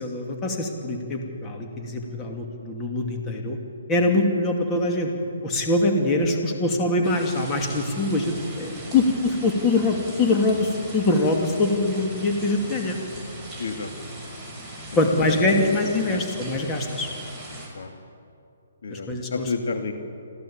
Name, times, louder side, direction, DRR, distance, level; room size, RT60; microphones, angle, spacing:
voice 1, 0.0-3.6 3.9-5.1 5.4-13.0 14.9-17.1 18.9-19.5, left 2 dB, 15° left, 1 dB, 2.5 m, -23 dB
voice 2, 1.8-2.3 8.6-9.0 13.6-14.2 16.0-16.2 17.7-17.9 18.8-19.9, left 4 dB, 70° left, 5 dB, 2.5 m, -32 dB
sound 1, 7.0-17.7, right 1 dB, ahead, 5.9 m, -39 dB
27.0 x 15.0 x 8.8 m, 2.6 s
hypercardioid pair, 160°, 0 cm